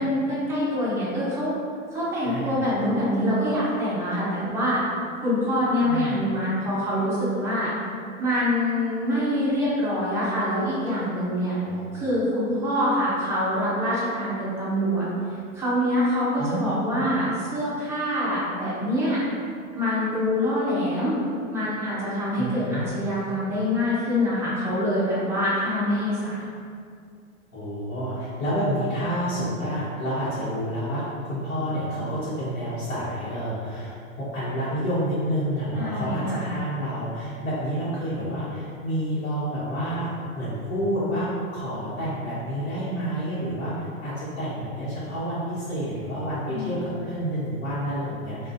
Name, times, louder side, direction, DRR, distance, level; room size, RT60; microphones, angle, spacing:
voice 1, 0.0-1.5 1.9-4.8 5.2-7.7 8.2-11.6 11.9-15.1 15.5-19.2 19.7-21.1 21.5-26.4 35.8-36.4 46.5-46.7, left 1 dB, 5° right, -10 dB, 0.5 m, -25 dB
voice 2, 2.2-2.6 5.8-6.2 11.6-11.9 16.4-17.1 22.4-22.8 27.5-40.1 40.3-48.5, equal, 70° left, -13 dB, 1.1 m, -29 dB
2.3 x 2.3 x 2.6 m, 2.3 s
hypercardioid pair, 130°, 42 cm